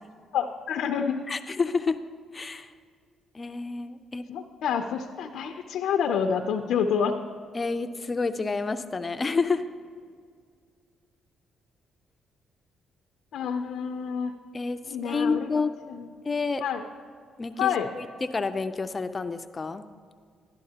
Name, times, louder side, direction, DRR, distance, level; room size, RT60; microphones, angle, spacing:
voice 1, 0.3-1.2 4.3-7.2 13.3-14.3 14.8-15.5 15.9-16.1 16.6-16.8 17.6-17.9, left 7 dB, 75° left, 5 dB, 0.5 m, -28 dB
voice 2, 1.3-2.0 2.3-2.7 3.3-4.2 7.5-9.6 14.5-14.8 15.0-15.8 16.2-16.6 17.4-19.9, left 4 dB, 30° left, 10 dB, 0.5 m, -29 dB
12.0 x 11.5 x 2.9 m, 2.1 s
cardioid pair, 90°, 0 cm